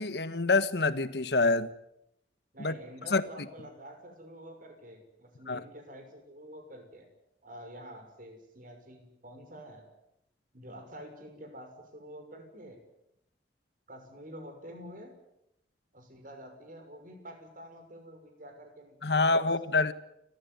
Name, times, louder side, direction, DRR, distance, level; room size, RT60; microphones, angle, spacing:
voice 1, 0.0-1.7 2.6-2.7 3.1-3.2 5.5-5.6 19.0-19.9, left 3 dB, 65° left, 1.4 m, -26 dB
voice 2, 2.5-7.1 7.4-9.9 10.5-12.8 13.9-15.1 15.9-19.5 19.8-19.9, equal, 50° right, 6.2 m, -48 dB
30.0 x 14.5 x 9.6 m
head